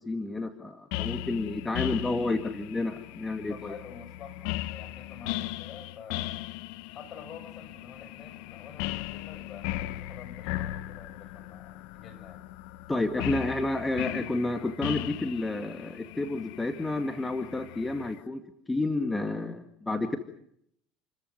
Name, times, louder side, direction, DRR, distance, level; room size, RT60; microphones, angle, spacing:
voice 1, 0.0-3.7 12.9-18.4 18.7-20.2, left 2 dB, 15° left, 7 dB, 2.0 m, -30 dB
sound 1, 0.9-18.2, left 15 dB, 70° left, 0.9 m, -37 dB
voice 2, 3.5-6.4 6.9-12.5, left 6 dB, 50° left, 7 dB, 6.7 m, -48 dB
29.5 x 14.0 x 9.3 m, 0.73 s
hypercardioid pair, 80°, 0 cm